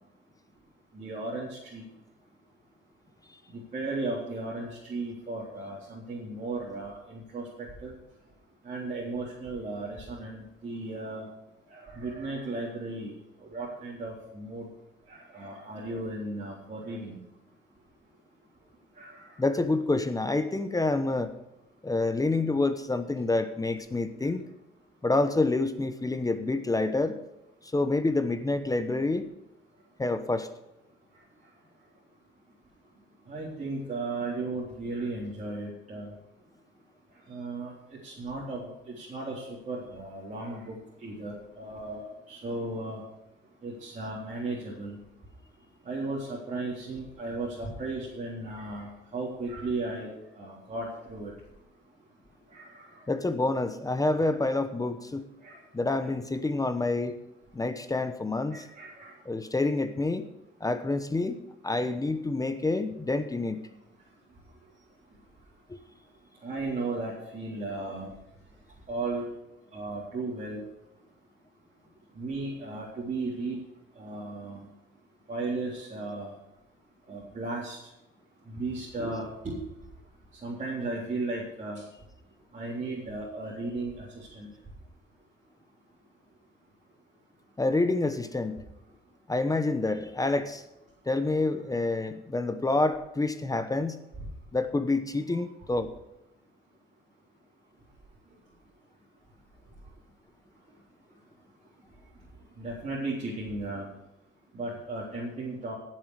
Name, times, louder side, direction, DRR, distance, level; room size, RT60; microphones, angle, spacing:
voice 1, 0.9-1.8 3.5-7.9 8.6-11.3 11.7-13.1 13.4-14.7 15.1-17.2 19.0-19.2 33.3-36.1 37.3-37.7 38.0-38.7 39.0-40.7 41.0-43.0 43.6-45.0 45.9-50.1 50.4-51.3 52.5-53.0 55.4-55.6 58.5-59.1 66.4-68.1 68.9-69.3 69.7-70.6 72.2-73.6 74.0-74.7 75.3-76.3 77.1-77.8 78.5-79.5 80.4-81.8 82.5-84.5 102.6-103.9 104.5-105.7, right 2 dB, 40° right, -6 dB, 3.7 m, -35 dB
voice 2, 19.4-21.3 21.8-24.4 25.0-27.2 27.6-29.3 30.0-30.5 53.1-55.3 55.7-57.2 57.5-58.6 59.3-60.2 60.6-61.4 61.6-63.7 65.7-65.8 87.6-88.6 89.3-90.6 91.1-94.0 94.5-95.9, left 2 dB, 15° left, 10 dB, 1.0 m, -27 dB
16.5 x 7.6 x 4.9 m, 0.91 s
cardioid pair, 90°, 20 cm